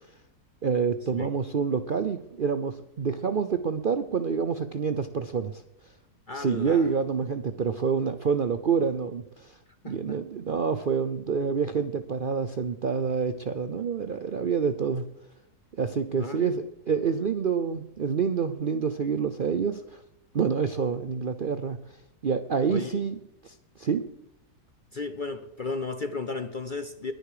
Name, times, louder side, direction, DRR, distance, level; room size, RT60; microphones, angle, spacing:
voice 1, 0.6-5.6 6.3-9.6 9.9-15.1 15.8-20.0 20.3-21.8 22.2-24.0, right 6 dB, 55° right, 10 dB, 0.6 m, -27 dB
voice 2, 6.3-6.9 9.8-10.2 16.2-16.6 22.7-23.0 24.9-27.1, left 4 dB, 45° left, 10 dB, 0.6 m, -34 dB
21.0 x 10.5 x 5.0 m, 0.84 s
omnidirectional pair, 1.7 m